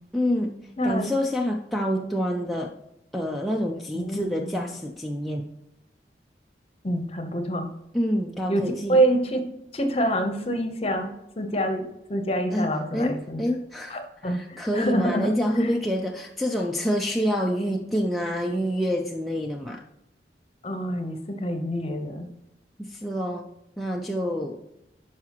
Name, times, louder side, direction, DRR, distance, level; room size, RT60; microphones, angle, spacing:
voice 1, 0.1-0.6 0.8-2.7 3.1-5.5 7.9-9.0 12.5-19.8 22.8-23.5 23.8-24.6, equal, ahead, -1 dB, 0.4 m, -27 dB
voice 2, 0.8-1.1 3.9-4.6 6.8-7.7 8.5-9.4 9.7-11.1 11.4-11.8 12.1-13.4 13.9-15.3 15.6-15.8 20.6-22.3, right 1 dB, 35° left, 7 dB, 0.9 m, -26 dB
11.5 x 4.8 x 3.0 m, 0.84 s
head